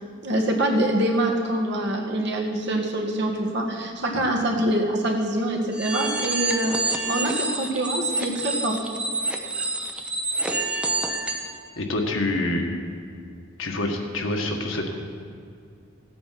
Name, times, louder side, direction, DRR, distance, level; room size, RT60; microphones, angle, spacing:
voice 1, 0.2-8.8, right 1 dB, 55° right, 0 dB, 1.8 m, -25 dB
sound 1, 5.7-11.5, right 2 dB, 5° right, 0.8 m, -27 dB
voice 2, 11.8-12.7 13.6-14.9, left 2 dB, 70° left, 2 dB, 1.6 m, -26 dB
15.5 x 8.6 x 5.9 m, 2.3 s
head